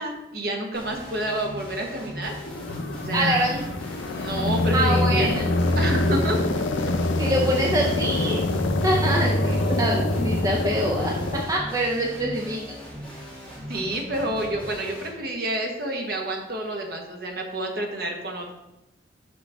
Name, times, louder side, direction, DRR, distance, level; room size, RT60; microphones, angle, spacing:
voice 1, 0.0-2.3 2.9-3.6 4.1-5.3 5.7-6.4 6.8-6.9 13.7-18.5, right 1 dB, 55° right, 1 dB, 1.2 m, -29 dB
sound 1, 0.7-15.1, equal, 5° left, 2.3 m, -39 dB
sound 2, 2.2-11.4, left 2 dB, 90° left, 0.6 m, -25 dB
voice 2, 3.1-3.6 4.7-5.4 7.2-8.4 8.8-11.1 11.5-12.6, right 1 dB, 20° right, -1 dB, 0.6 m, -24 dB
6.2 x 5.9 x 3.5 m, 0.95 s
head